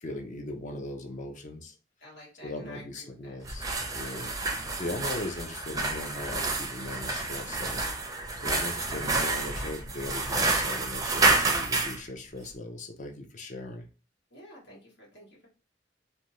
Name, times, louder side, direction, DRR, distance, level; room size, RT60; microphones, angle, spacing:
voice 1, 0.0-1.7 2.4-7.8 8.4-13.9, left 2 dB, 45° left, 5 dB, 0.5 m, -39 dB
voice 2, 2.0-3.4 14.3-15.5, left 1 dB, 75° left, -4 dB, 1.4 m, -50 dB
sound 1, 3.4-12.0, right 3 dB, 20° right, 0.5 m, -29 dB
2.6 x 2.2 x 2.9 m, 0.34 s
head